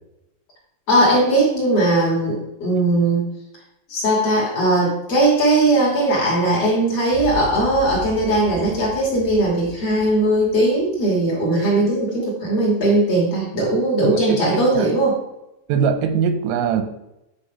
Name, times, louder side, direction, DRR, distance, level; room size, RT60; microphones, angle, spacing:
voice 1, 0.9-3.3 3.9-15.2, right 1 dB, 35° left, -5 dB, 3.1 m, -19 dB
sound 1, 7.1-11.5, left 3 dB, 75° left, 3.5 m, -36 dB
voice 2, 14.0-14.9 15.7-16.9, right 6 dB, 90° right, 9 dB, 3.5 m, -22 dB
11.0 x 4.0 x 5.4 m, 0.91 s
omnidirectional pair, 5.7 m